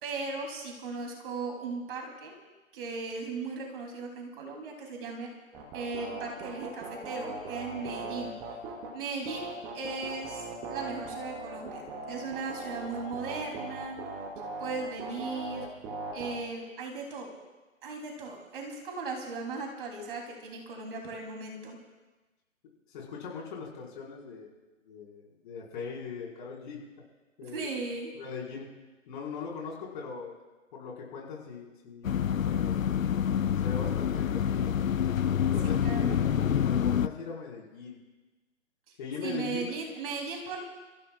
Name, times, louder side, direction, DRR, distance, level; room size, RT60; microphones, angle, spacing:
voice 1, 0.0-2.4 2.7-5.3 5.7-8.3 8.9-9.5 9.7-14.0 14.6-15.7 16.1-17.3 17.8-21.8 27.5-28.1 35.8-36.2 39.2-40.6, right 4 dB, 45° right, 1 dB, 3.2 m, -37 dB
sound 1, 5.5-8.9 9.3-16.4, right 3 dB, 5° right, 0.5 m, -39 dB
voice 2, 22.9-24.5 24.9-26.8 27.4-27.6 28.1-28.7 29.1-30.4 30.7-32.1 32.5-32.8 33.6-34.7 35.4-38.0 39.0-39.7, left 5 dB, 40° left, -3 dB, 4.7 m, -40 dB
sound 2, 32.0-37.1, left 8 dB, 80° left, 0.6 m, -27 dB
28.5 x 15.0 x 2.4 m, 1.2 s
figure-of-eight pair, 140°, 40 cm